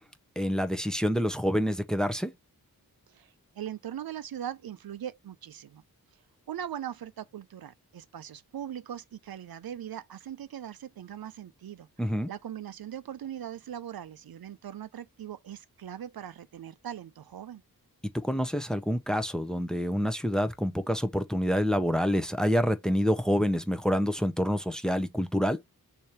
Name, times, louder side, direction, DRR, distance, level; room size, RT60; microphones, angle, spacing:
voice 1, 0.4-2.3 12.0-12.3 18.1-25.6, equal, ahead, 0.7 m, -27 dB
voice 2, 3.1-5.8 6.5-11.9 12.3-17.6, right 10 dB, 70° right, 0.5 m, -40 dB
3.2 x 2.7 x 4.4 m
wide cardioid pair, 75°, 37 cm